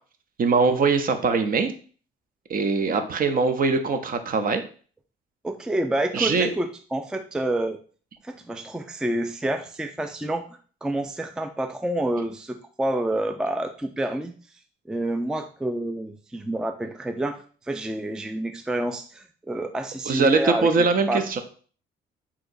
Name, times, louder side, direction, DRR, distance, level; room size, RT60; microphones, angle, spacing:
voice 1, 0.4-1.7 2.5-4.6 6.1-6.5 20.1-21.4, right 4 dB, 45° right, 8 dB, 0.7 m, -22 dB
voice 2, 5.4-7.8 8.2-10.5 10.8-14.3 14.9-21.4, right 1 dB, 5° right, 7 dB, 0.3 m, -28 dB
6.0 x 2.9 x 2.6 m, 0.42 s
cardioid pair, 90°, 20 cm